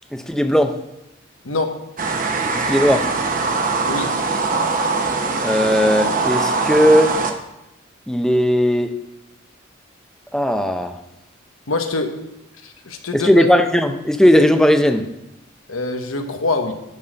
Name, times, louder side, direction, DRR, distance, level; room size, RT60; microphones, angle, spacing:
voice 1, 0.1-0.7 2.5-3.1 5.4-7.2 8.1-9.0 10.3-10.9 13.1-15.1, equal, 5° left, 7 dB, 0.5 m, -17 dB
voice 2, 1.4-1.8 3.9-4.1 11.7-12.2 12.6-13.5 15.7-16.7, left 3 dB, 90° left, 6 dB, 1.1 m, -24 dB
sound 1, 2.0-7.3, right 4 dB, 40° right, 0.8 m, -22 dB
10.5 x 4.2 x 6.5 m, 0.91 s
head